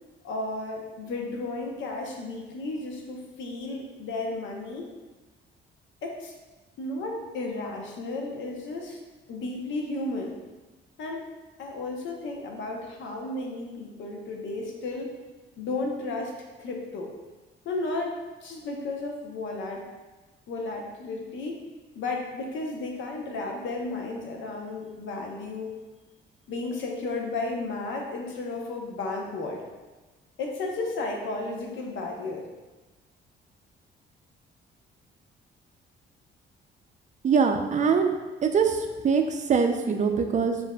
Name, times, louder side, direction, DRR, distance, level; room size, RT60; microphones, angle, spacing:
voice 1, 0.2-4.9 6.0-6.3 6.8-9.0 9.3-10.4 11.0-11.3 11.6-15.1 15.6-17.1 17.6-19.9 20.5-21.6 21.9-25.7 26.5-29.6 30.4-32.5, left 2 dB, 75° left, 1 dB, 0.7 m, -33 dB
voice 2, 37.2-38.1 38.4-38.8 39.0-40.6, right 6 dB, 40° right, 5 dB, 0.4 m, -23 dB
6.9 x 2.5 x 2.2 m, 1.2 s
cardioid pair, 90°, 20 cm